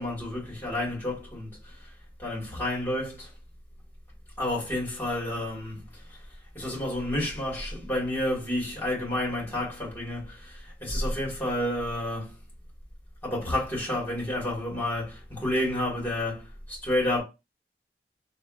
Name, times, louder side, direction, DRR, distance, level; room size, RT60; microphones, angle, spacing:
voice 1, 0.0-1.7 2.2-3.3 4.4-5.8 6.5-12.4 13.2-17.2, left 1 dB, 10° left, 1.5 m, -30 dB
3.3 x 2.3 x 2.3 m
head